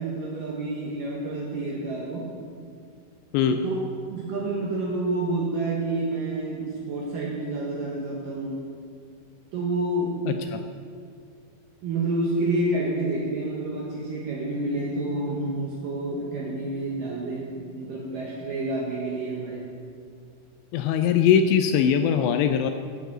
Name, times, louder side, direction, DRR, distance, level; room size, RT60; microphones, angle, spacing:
voice 1, 0.0-2.3 3.6-3.8 4.1-8.6 9.5-10.2 11.8-19.6, right 2 dB, 75° right, -3 dB, 2.1 m, -29 dB
voice 2, 10.3-10.6 20.7-22.7, left 8 dB, 85° left, 7 dB, 2.6 m, -21 dB
10.0 x 6.9 x 7.7 m, 2.2 s
omnidirectional pair, 5.4 m